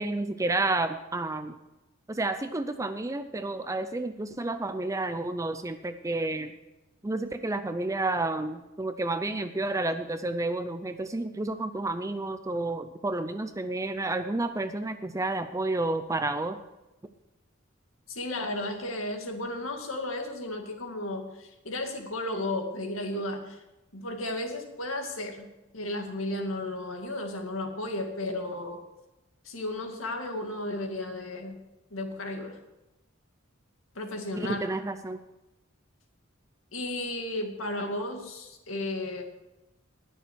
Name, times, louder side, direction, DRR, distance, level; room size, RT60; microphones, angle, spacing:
voice 1, 0.0-1.5 2.1-6.5 7.0-16.6 34.4-35.2, right 2 dB, 15° right, 9 dB, 0.5 m, -30 dB
voice 2, 18.1-23.6 23.9-25.5 25.7-28.8 29.4-31.6 31.9-32.6 34.0-34.6 36.7-39.2, left 1 dB, 85° left, 3 dB, 2.2 m, -34 dB
20.0 x 6.8 x 4.6 m, 0.99 s
head